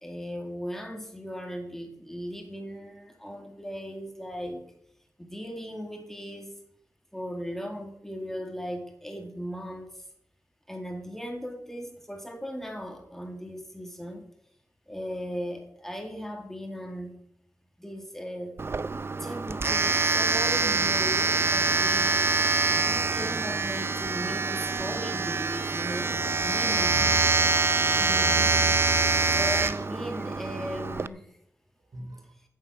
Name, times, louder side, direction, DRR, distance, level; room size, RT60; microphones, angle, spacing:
voice 1, 0.0-4.6 5.2-6.5 7.1-9.9 10.7-14.3 14.9-17.1 17.8-18.6 19.2-22.4 22.8-27.0 29.3-31.3, equal, 5° left, 2 dB, 2.0 m, -37 dB
Domestic sounds home sounds, 18.6-31.1, right 3 dB, 35° right, 0.4 m, -25 dB
voice 2, 26.9-27.6 27.9-28.8 29.7-29.9 31.9-32.3, equal, 65° right, 2 dB, 3.3 m, -41 dB
15.5 x 7.5 x 5.8 m, 0.76 s
wide cardioid pair, 115°, 7 cm